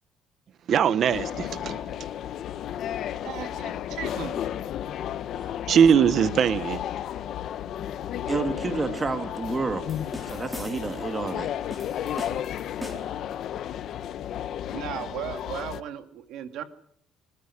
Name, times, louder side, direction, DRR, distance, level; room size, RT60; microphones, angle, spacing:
voice 1, 0.7-1.8 5.7-6.8, right 8 dB, 40° right, 16 dB, 1.0 m, -21 dB
sound 1, 1.1-15.8, left 10 dB, 50° left, 1.1 m, -33 dB
voice 2, 2.9-4.5 14.7-16.6, right 9 dB, 60° right, 10 dB, 2.2 m, -36 dB
voice 3, 8.3-9.9 10.2-11.5, right 3 dB, 20° right, 8 dB, 2.0 m, -29 dB
sound 2, 9.9-11.1 11.7-13.3, left 1 dB, ahead, 3.9 m, -40 dB
26.0 x 14.5 x 9.8 m, 0.67 s
cardioid pair, 170°, 0 cm